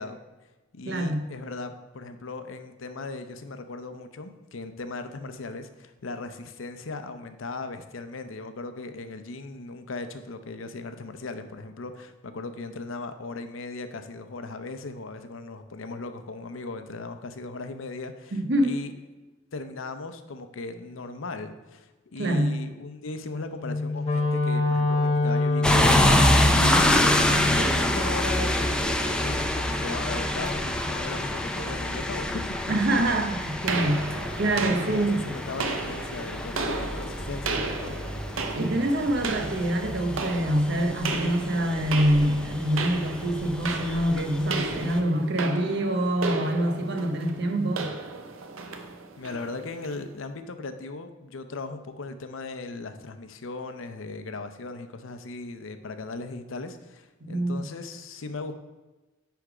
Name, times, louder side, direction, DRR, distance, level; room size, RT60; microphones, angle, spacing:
voice 1, 0.0-18.9 19.5-25.9 27.5-33.0 34.6-38.0 49.2-58.5, left 3 dB, 80° left, 9 dB, 0.6 m, -38 dB
voice 2, 0.9-1.2 18.3-18.7 22.2-22.6 32.7-35.3 38.5-47.9 57.3-57.6, right 1 dB, 55° right, 5 dB, 0.8 m, -25 dB
Wind instrument woodwind instrument, 23.6-27.7, left 2 dB, 30° left, 0.7 m, -25 dB
sound 1, 25.6-45.0, left 1 dB, 5° left, 0.4 m, -27 dB
sound 2, 33.7-50.0, right 4 dB, 90° right, 0.7 m, -34 dB
9.7 x 3.5 x 4.9 m, 1.1 s
head